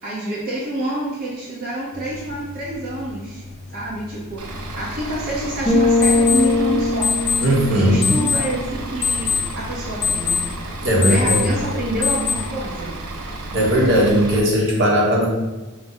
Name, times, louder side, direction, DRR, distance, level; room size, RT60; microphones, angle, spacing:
voice 1, 0.0-3.4 3.7-7.1 7.7-10.4 11.0-13.0, right 1 dB, 40° right, -7 dB, 0.8 m, -27 dB
sound 1, 1.9-12.4, left 6 dB, 40° left, 0.4 m, -27 dB
Bus / Idling, 4.4-14.4, right 2 dB, 85° right, 0.5 m, -32 dB
sound 2, 5.7-9.4, left 2 dB, ahead, 1.2 m, -21 dB
voice 2, 7.4-8.1 10.8-11.5 13.5-15.3, equal, 60° right, -3 dB, 1.0 m, -17 dB
4.9 x 2.1 x 3.8 m, 1.2 s
head